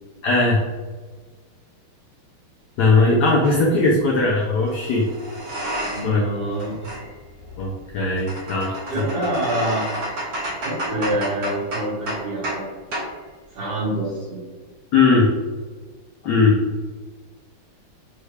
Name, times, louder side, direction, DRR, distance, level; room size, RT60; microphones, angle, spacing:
voice 1, 0.2-0.6 2.8-5.0 6.0-6.2 7.6-8.8 14.9-15.3 16.2-16.6, left 3 dB, 70° left, -2 dB, 1.0 m, -18 dB
sound 1, 3.4-3.6 4.7-6.2 6.5-12.7 12.9-13.1, right 1 dB, 60° right, 1.5 m, -31 dB
voice 2, 5.9-7.1 8.9-9.8 10.6-12.7 13.5-14.4, right 1 dB, 85° right, -8 dB, 2.7 m, -26 dB
5.4 x 2.3 x 3.2 m, 1.4 s
omnidirectional pair, 2.4 m